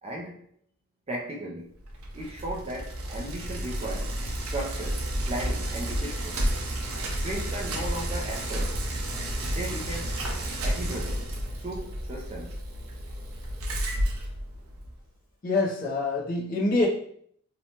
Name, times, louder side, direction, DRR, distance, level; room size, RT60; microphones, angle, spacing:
voice 1, 0.0-0.4 1.1-1.7 2.1-4.2 4.4-6.4 7.1-8.8 9.5-10.2 10.6-11.3 11.6-12.6, right 1 dB, 30° right, 0.3 m, -36 dB
Bicycle, 1.8-15.0, right 1 dB, 80° right, 0.6 m, -31 dB
voice 2, 15.4-16.9, left 2 dB, 40° left, 0.5 m, -25 dB
2.8 x 2.1 x 2.8 m
head